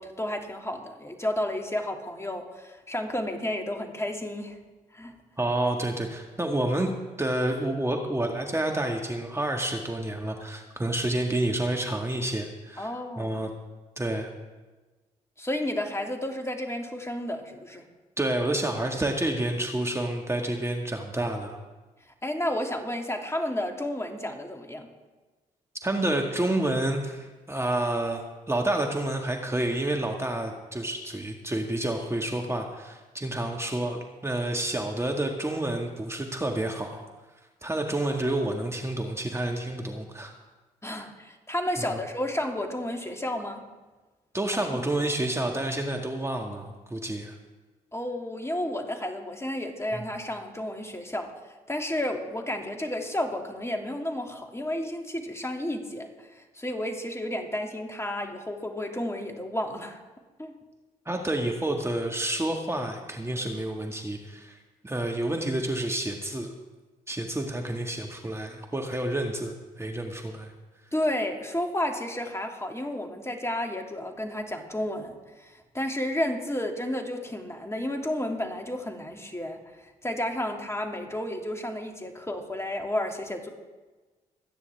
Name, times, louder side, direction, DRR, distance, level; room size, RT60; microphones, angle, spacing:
voice 1, 0.0-4.6 4.9-5.1 12.8-13.3 15.4-17.8 22.2-24.9 40.8-43.6 44.7-44.8 47.9-60.0 60.4-60.5 70.9-83.5, left 1 dB, 15° left, 3 dB, 2.5 m, -32 dB
voice 2, 5.4-6.9 7.2-13.5 14.0-14.3 18.2-21.6 25.8-37.0 37.6-40.3 40.9-41.0 41.8-42.0 44.3-47.4 49.9-50.1 61.1-66.5 67.1-70.5, right 1 dB, 15° right, 2 dB, 1.8 m, -29 dB
25.5 x 9.7 x 3.5 m, 1.2 s
hypercardioid pair, 45°, 17 cm